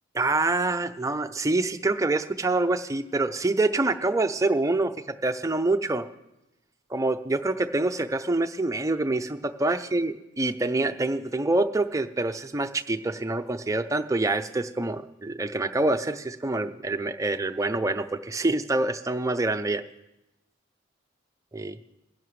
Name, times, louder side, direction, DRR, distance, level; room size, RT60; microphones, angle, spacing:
voice 1, 0.2-4.9 5.2-6.1 6.9-19.8 21.5-21.8, right 2 dB, 15° right, 8 dB, 0.5 m, -26 dB
20.5 x 11.0 x 3.2 m, 0.94 s
head